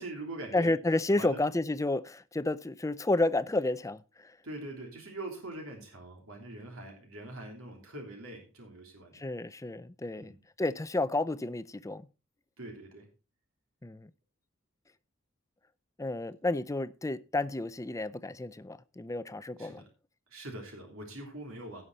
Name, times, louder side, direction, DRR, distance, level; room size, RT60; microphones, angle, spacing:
voice 1, 0.0-0.7 1.2-1.4 4.4-9.3 10.1-10.4 12.6-13.1 19.6-19.9 20.3-21.8, right 1 dB, 80° right, 3.2 m, -43 dB
voice 2, 0.5-4.4 9.1-10.3 10.6-12.1 13.8-14.1 16.0-19.8, left 2 dB, 15° left, 0.5 m, -31 dB
17.0 x 5.8 x 4.0 m
head